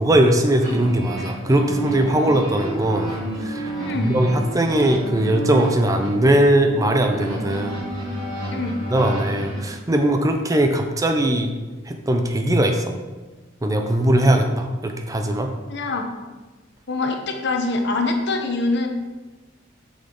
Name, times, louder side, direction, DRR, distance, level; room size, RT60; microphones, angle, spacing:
voice 1, 0.0-3.1 3.4-7.8 8.9-11.5 11.9-12.9 13.6-15.5, right 1 dB, 15° right, 4 dB, 0.5 m, -20 dB
sound 1, 0.6-9.6, right 1 dB, 80° right, 2.2 m, -30 dB
voice 2, 3.8-4.1 8.5-8.8 15.7-16.1 16.9-18.9, left 3 dB, 60° left, 4 dB, 0.9 m, -24 dB
6.3 x 6.2 x 3.8 m, 1.2 s
head